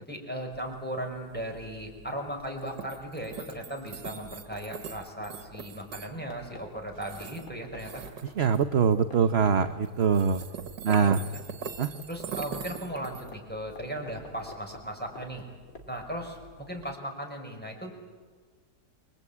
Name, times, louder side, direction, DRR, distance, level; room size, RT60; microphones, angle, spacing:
voice 1, 0.0-8.0 11.0-11.1 12.1-15.4 15.9-17.9, equal, 5° left, 2 dB, 5.1 m, -37 dB
sound 1, 0.5-16.9, right 7 dB, 80° right, 2.1 m, -44 dB
sound 2, 4.1-8.8 9.1-9.2 9.4-11.2 11.5-16.2, left 3 dB, 55° left, 3.3 m, -48 dB
voice 2, 8.4-10.4 10.8-11.2 11.8-11.9, right 6 dB, 45° right, 8 dB, 1.0 m, -23 dB
28.5 x 23.5 x 8.6 m, 1.5 s
omnidirectional pair, 1.9 m